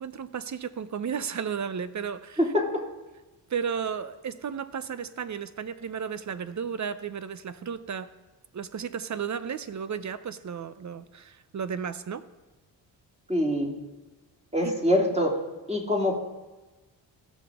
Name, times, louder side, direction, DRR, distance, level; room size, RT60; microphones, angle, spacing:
voice 1, 0.0-2.4 3.5-8.1 8.5-12.3 14.6-14.8, right 7 dB, 40° right, 14 dB, 0.7 m, -33 dB
voice 2, 2.4-2.8 13.3-13.8 14.5-15.4 15.7-16.2, left 1 dB, 15° right, 0 dB, 2.6 m, -25 dB
16.5 x 6.1 x 3.6 m, 1.2 s
supercardioid pair, 55°, 47 cm